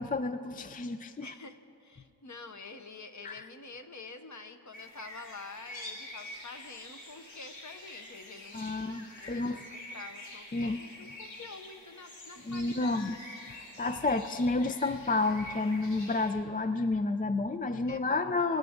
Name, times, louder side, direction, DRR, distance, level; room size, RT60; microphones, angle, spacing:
voice 1, 0.0-1.3 3.2-3.5 8.5-9.6 10.5-10.8 12.4-13.2 13.6-18.6, left 3 dB, 20° left, 10 dB, 0.3 m, -30 dB
voice 2, 1.2-13.2 17.9-18.3, left 3 dB, 40° left, 7 dB, 0.9 m, -48 dB
sound 1, 4.7-16.3, left 1 dB, 85° left, 2.3 m, -47 dB
24.5 x 10.5 x 3.6 m, 2.9 s
wide cardioid pair, 80°, 44 cm